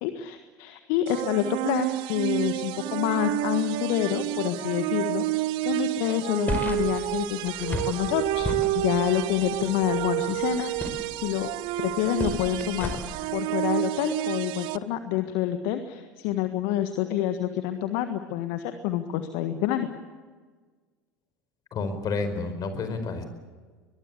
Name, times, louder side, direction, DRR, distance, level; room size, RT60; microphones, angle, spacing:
voice 1, 0.0-5.2 5.6-8.5 8.7-10.7 11.2-11.5 11.8-13.0 13.3-19.9, left 11 dB, 60° left, 8 dB, 1.6 m, -27 dB
sound 1, 1.1-14.8, right 16 dB, 55° right, 0.9 m, -30 dB
sound 2, 6.5-13.2, left 2 dB, 15° left, 4.8 m, -35 dB
voice 2, 21.7-23.2, left 4 dB, 40° left, 9 dB, 4.8 m, -30 dB
23.0 x 22.0 x 8.4 m, 1.5 s
figure-of-eight pair, 75°, 10 cm